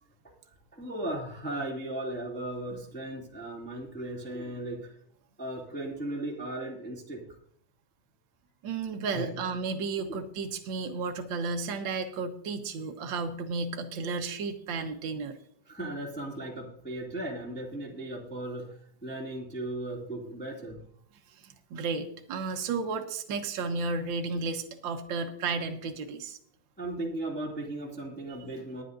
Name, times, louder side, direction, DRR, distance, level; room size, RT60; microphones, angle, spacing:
voice 1, 0.7-5.0 5.4-7.4 9.1-9.4 15.7-20.8 26.8-28.8, right 1 dB, 5° left, -2 dB, 2.1 m, -37 dB
voice 2, 8.6-15.3 21.4-26.4, right 4 dB, 55° right, 4 dB, 1.4 m, -33 dB
21.0 x 10.0 x 2.6 m, 0.63 s
omnidirectional pair, 3.5 m